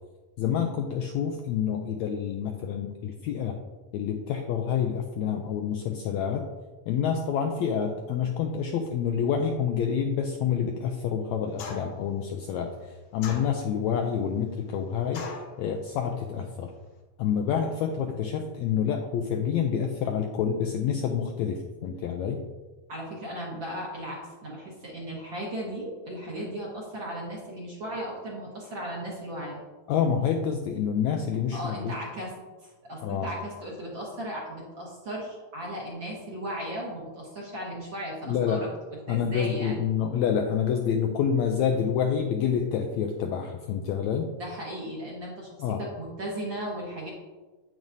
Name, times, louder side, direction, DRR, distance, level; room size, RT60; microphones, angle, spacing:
voice 1, 0.4-3.6 3.9-6.5 6.9-15.2 15.6-16.7 17.2-22.5 29.9-31.9 33.0-33.3 38.3-38.6 39.1-44.3 45.6-45.8, left 7 dB, 90° left, 4 dB, 1.6 m, -28 dB
sound 1, 11.6-12.1 13.2-13.9 15.1-15.6, left 4 dB, 70° left, 2.4 m, -38 dB
voice 2, 22.9-29.6 31.5-32.3 32.6-39.8 44.3-47.1, right 1 dB, 50° right, -4 dB, 1.6 m, -36 dB
9.0 x 8.6 x 2.7 m, 1.2 s
omnidirectional pair, 3.8 m